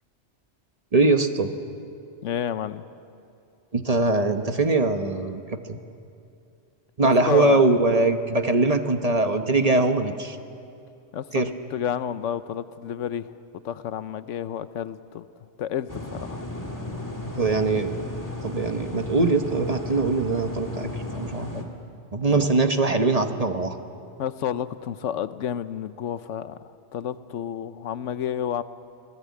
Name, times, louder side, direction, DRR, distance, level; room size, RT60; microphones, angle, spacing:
voice 1, 0.9-1.5 3.7-5.8 7.0-10.4 11.3-11.5 17.4-18.0 18.4-20.9 21.1-21.6 22.1-23.8, right 3 dB, 35° right, 7 dB, 1.0 m, -22 dB
voice 2, 2.2-2.9 7.0-7.6 11.1-11.4 11.7-13.3 13.6-15.3 15.6-16.4 22.3-22.5 24.2-26.6 26.9-28.6, left 9 dB, 80° left, 13 dB, 1.0 m, -30 dB
sound 1, 15.9-21.6, left 2 dB, 15° left, 2.0 m, -34 dB
25.5 x 17.5 x 8.4 m, 2.6 s
omnidirectional pair, 1.2 m